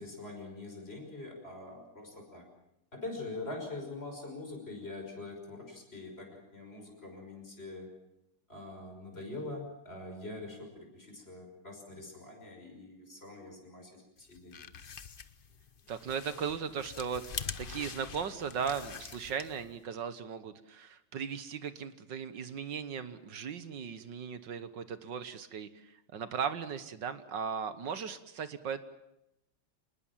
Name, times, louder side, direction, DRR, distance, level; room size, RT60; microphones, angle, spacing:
voice 1, 0.0-2.5 2.9-7.9 8.5-14.6, left 2 dB, 25° left, 3 dB, 6.0 m, -44 dB
sound 1, 14.2-19.8, left 6 dB, 50° left, 0.6 m, -44 dB
voice 2, 15.9-17.2 17.6-28.8, right 7 dB, 60° right, 12 dB, 1.8 m, -37 dB
26.0 x 20.0 x 7.5 m, 0.84 s
omnidirectional pair, 2.3 m